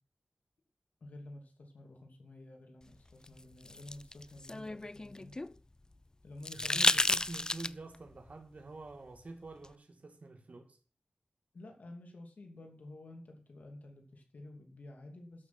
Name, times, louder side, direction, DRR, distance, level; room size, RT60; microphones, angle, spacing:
voice 1, 1.0-5.4 6.2-7.3 11.5-15.5, left 1 dB, 85° left, 2.8 m, -51 dB
sound 1, 3.3-5.5 6.4-8.0 9.6-9.7, left 2 dB, 30° left, 0.4 m, -32 dB
voice 2, 6.5-10.8, right 2 dB, 60° right, 2.2 m, -47 dB
13.0 x 6.3 x 6.1 m
wide cardioid pair, 60°, 3 cm